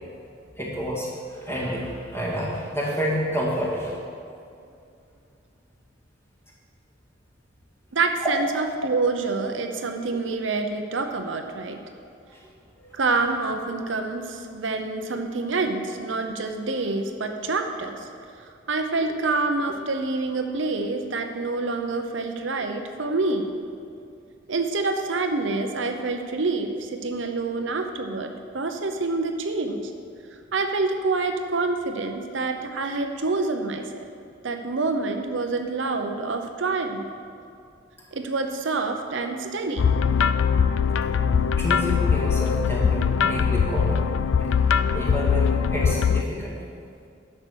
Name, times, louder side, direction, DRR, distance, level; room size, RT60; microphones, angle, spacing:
voice 1, 0.6-1.1 1.5-3.9 8.2-8.3 12.3-12.4 12.8-12.9 41.6-44.1 44.9-46.6, equal, 15° left, -5 dB, 2.1 m, -28 dB
voice 2, 7.9-11.8 12.9-18.0 18.7-23.5 24.5-29.9 30.5-34.0 34.4-37.1 38.1-39.9, right 3 dB, 75° right, 5 dB, 0.8 m, -27 dB
sound 1, 39.8-46.2, left 6 dB, 85° left, 0.4 m, -22 dB
11.0 x 6.6 x 6.4 m, 2.4 s
head